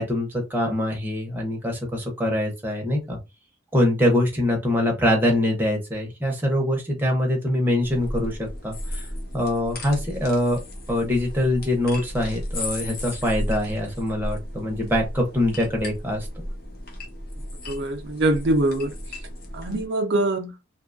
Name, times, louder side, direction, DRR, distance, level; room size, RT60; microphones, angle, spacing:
voice 1, 0.0-3.2 3.7-9.0 9.3-10.6 10.9-16.4, left 1 dB, 10° right, 0.7 m, -24 dB
sound 1, 7.8-19.9, left 1 dB, 45° left, 0.7 m, -34 dB
voice 2, 17.7-18.9 19.5-20.5, right 1 dB, 55° right, 0.4 m, -23 dB
2.7 x 2.3 x 2.5 m
head